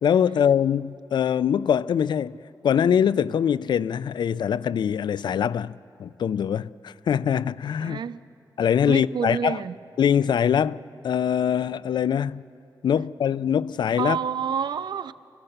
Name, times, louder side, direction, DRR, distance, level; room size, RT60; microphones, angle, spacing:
voice 1, 0.0-2.4 2.6-8.0 8.6-9.6 10.0-12.4 12.8-14.2, left 8 dB, 75° left, 0.4 m, -23 dB
voice 2, 7.8-8.2 8.9-9.8 14.0-15.1, right 7 dB, 70° right, 0.5 m, -28 dB
26.5 x 16.0 x 6.7 m
wide cardioid pair, 125°, 8 cm